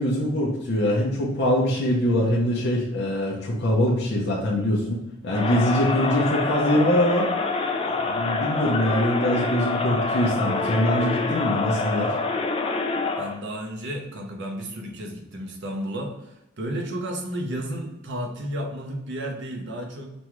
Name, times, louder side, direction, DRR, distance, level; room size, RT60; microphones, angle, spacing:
voice 1, 0.0-5.0 5.2-7.3 8.1-12.1, equal, 60° left, -3 dB, 0.7 m, -23 dB
Crowd, 5.3-13.4, left 3 dB, 30° left, 0.4 m, -26 dB
voice 2, 13.2-20.1, right 1 dB, 60° right, 2 dB, 0.7 m, -32 dB
5.2 x 2.3 x 3.0 m, 0.92 s
head